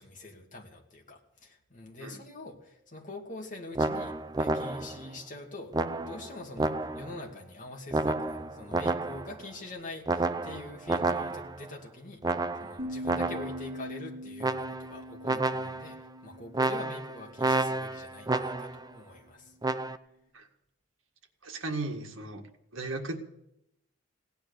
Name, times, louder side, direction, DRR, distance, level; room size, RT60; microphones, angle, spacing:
voice 1, 0.0-5.7 6.0-19.5, left 2 dB, 40° left, 0 dB, 2.5 m, -44 dB
sound 1, 3.7-5.1 5.7-7.2 7.9-9.4 10.1-11.7 12.2-13.7 14.4-15.0 15.2-16.0 16.5-18.9 19.6-20.0, right 2 dB, 20° right, 0.5 m, -30 dB
sound 2, 12.8-17.9, equal, 40° right, 3.5 m, -43 dB
voice 2, 21.4-22.4 22.7-23.2, right 2 dB, 70° right, 4 dB, 1.8 m, -36 dB
17.5 x 10.5 x 6.9 m, 0.82 s
head